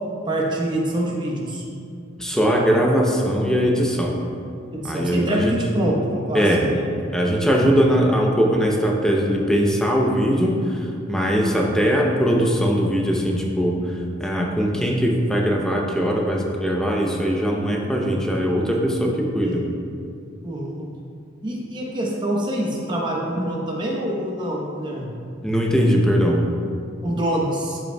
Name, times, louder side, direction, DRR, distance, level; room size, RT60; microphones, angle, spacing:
voice 1, 0.2-1.6 4.7-6.8 19.4-19.6 20.4-20.9 21.4-25.1 27.0-27.8, right 1 dB, 25° right, -3 dB, 1.0 m, -25 dB
voice 2, 2.2-4.2 4.8-5.6 6.3-6.7 7.1-19.7 25.4-26.4, equal, 5° left, -1 dB, 0.6 m, -20 dB
12.0 x 5.1 x 2.3 m, 2.4 s
head